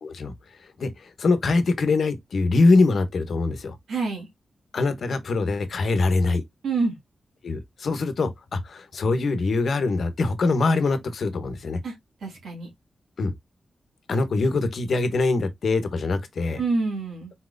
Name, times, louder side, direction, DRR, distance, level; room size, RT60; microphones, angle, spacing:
voice 1, 0.0-0.3 0.6-3.8 4.7-6.4 7.4-11.8 13.2-13.3 14.1-16.6, left 3 dB, 70° left, 1.0 m, -23 dB
voice 2, 3.9-4.3 6.6-7.0 11.8-11.9 12.2-12.7 16.6-17.3, right 3 dB, 90° right, 2.1 m, -27 dB
4.2 x 4.0 x 2.6 m
cardioid pair, 55°, 0 cm